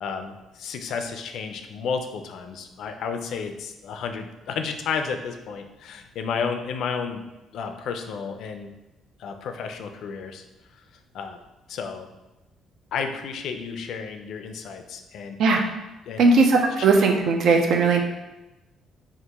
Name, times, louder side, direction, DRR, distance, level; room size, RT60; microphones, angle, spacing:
voice 1, 0.0-7.2 7.5-8.7 9.2-10.4 11.1-11.4 11.7-12.1 12.9-15.4 16.1-16.4 16.8-16.9, left 6 dB, 65° left, 6 dB, 0.3 m, -32 dB
voice 2, 16.2-18.0, right 3 dB, 65° right, 2 dB, 0.5 m, -18 dB
2.9 x 2.4 x 3.4 m, 1.0 s
cardioid pair, 115°, 0 cm